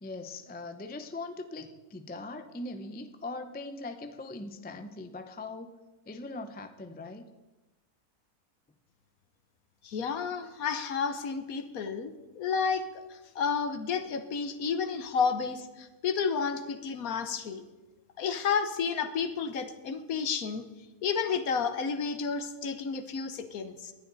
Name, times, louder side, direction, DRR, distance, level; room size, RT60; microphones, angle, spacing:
voice 1, 0.0-5.8 6.1-7.3, left 2 dB, 15° left, 8 dB, 0.4 m, -41 dB
voice 2, 9.8-17.7 18.2-20.7 21.0-23.9, left 6 dB, 65° left, 9 dB, 1.4 m, -31 dB
19.5 x 11.5 x 4.0 m, 1.1 s
omnidirectional pair, 1.6 m